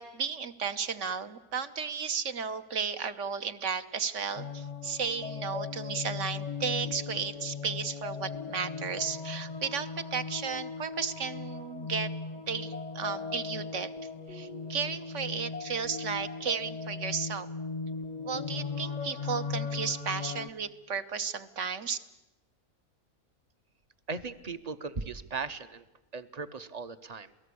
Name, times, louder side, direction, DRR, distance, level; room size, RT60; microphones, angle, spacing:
voice 1, 0.0-12.1 12.5-13.9 14.3-17.5 18.2-22.0, right 6 dB, 55° right, 10 dB, 1.3 m, -34 dB
sound 1, 4.4-20.5, left 5 dB, 35° left, 0.8 m, -38 dB
voice 2, 24.1-25.8 26.1-27.3, right 4 dB, 30° right, 12 dB, 0.9 m, -38 dB
27.5 x 18.5 x 8.5 m, 1.0 s
omnidirectional pair, 1.6 m